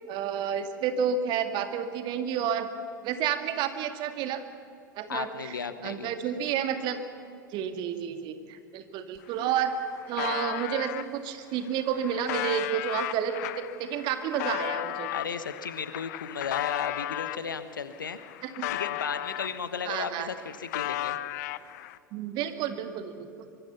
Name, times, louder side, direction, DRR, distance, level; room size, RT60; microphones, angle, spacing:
voice 1, 0.1-2.7 3.0-4.4 5.0-5.5 5.8-7.0 7.5-9.8 10.1-15.1 18.6-18.7 19.9-20.3 22.1-23.5, right 8 dB, 45° right, 8 dB, 2.1 m, -30 dB
voice 2, 5.1-6.1 15.1-18.2 18.7-21.2, left 6 dB, 75° left, 12 dB, 1.3 m, -35 dB
sound 1, 9.2-9.3 9.5-11.0 11.7-17.5 17.9-19.9 20.1-22.0, left 14 dB, 55° left, 0.7 m, -35 dB
24.5 x 23.5 x 5.7 m, 2.6 s
figure-of-eight pair, 80°, 11 cm